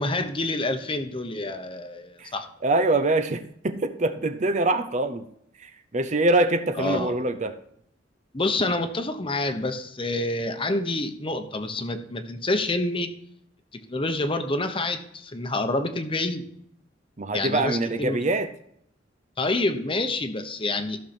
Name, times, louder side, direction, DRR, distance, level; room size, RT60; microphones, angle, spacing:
voice 1, 0.0-2.5 6.8-7.1 8.3-13.1 13.9-16.4 17.3-18.2 19.4-21.0, left 2 dB, 30° left, 1.0 m, -27 dB
voice 2, 2.6-5.2 5.6-7.6 17.2-18.5, right 2 dB, 40° right, 0.7 m, -24 dB
15.0 x 6.5 x 4.4 m
head